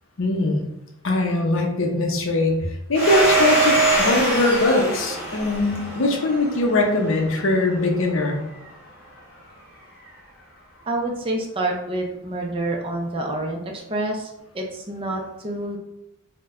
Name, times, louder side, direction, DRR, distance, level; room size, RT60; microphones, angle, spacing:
voice 1, 0.2-0.7 1.0-8.4, left 2 dB, 60° left, 2 dB, 0.5 m, -21 dB
Domestic sounds home sounds, 2.9-7.4, right 2 dB, 5° right, 1.4 m, -22 dB
voice 2, 10.9-15.8, right 2 dB, 25° right, 0 dB, 0.4 m, -28 dB
4.3 x 2.1 x 2.4 m, 0.87 s
head